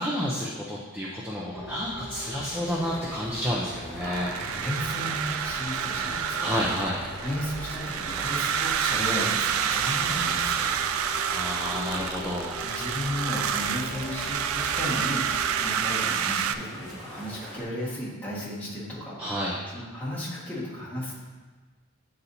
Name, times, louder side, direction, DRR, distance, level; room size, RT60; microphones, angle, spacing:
voice 1, 0.0-4.3 6.4-7.0 11.3-12.6 19.2-19.5, equal, 10° right, -5 dB, 0.6 m, -30 dB
sound 1, 1.5-15.8, left 1 dB, 60° left, 0.8 m, -43 dB
sound 2, 2.3-17.6, equal, 35° right, 1.4 m, -44 dB
voice 2, 4.0-6.6 7.2-10.7 12.6-19.1 19.4-21.2, left 1 dB, 10° left, -8 dB, 1.6 m, -34 dB
sound 3, 4.0-16.6, right 8 dB, 80° right, 0.3 m, -29 dB
9.3 x 4.2 x 2.7 m, 1.3 s
head